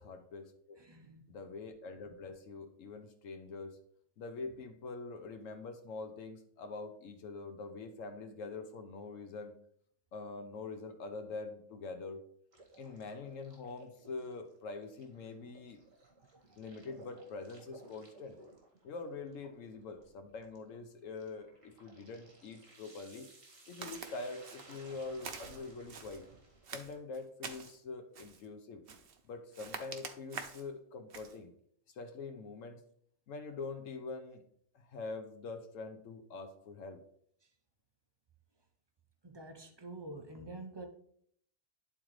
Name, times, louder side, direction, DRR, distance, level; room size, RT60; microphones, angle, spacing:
voice 1, 0.0-0.8 1.3-3.8 4.2-9.5 10.1-12.2 12.8-15.8 16.6-18.4 18.8-23.2 23.7-26.2 26.7-28.8 29.3-31.5 31.9-32.8 33.3-34.4 34.7-37.0, left 3 dB, 80° left, 5 dB, 1.1 m, -44 dB
voice 2, 0.8-1.3 39.2-40.9, right 2 dB, 35° right, 5 dB, 0.4 m, -47 dB
sound 1, 12.5-27.0, right 2 dB, 85° right, 1.9 m, -58 dB
Walk footsteps, 23.8-24.1 24.4-24.8 25.2-26.2 26.6-27.8 28.1-28.5 28.9-29.2 29.5-30.7 31.1-31.4, right 6 dB, 55° right, 0.8 m, -46 dB
11.0 x 3.8 x 3.1 m, 0.65 s
omnidirectional pair, 1.3 m